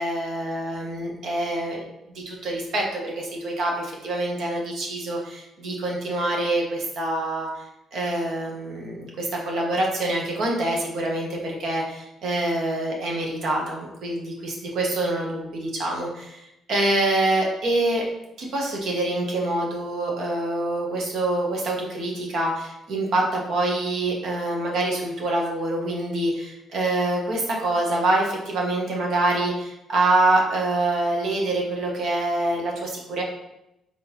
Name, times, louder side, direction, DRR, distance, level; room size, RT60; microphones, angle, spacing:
voice 1, 0.0-1.8 2.1-7.5 7.9-18.1 18.4-33.2, right 2 dB, 70° right, -1 dB, 1.2 m, -25 dB
4.3 x 3.7 x 3.1 m, 0.87 s
cardioid pair, 90°, 0 cm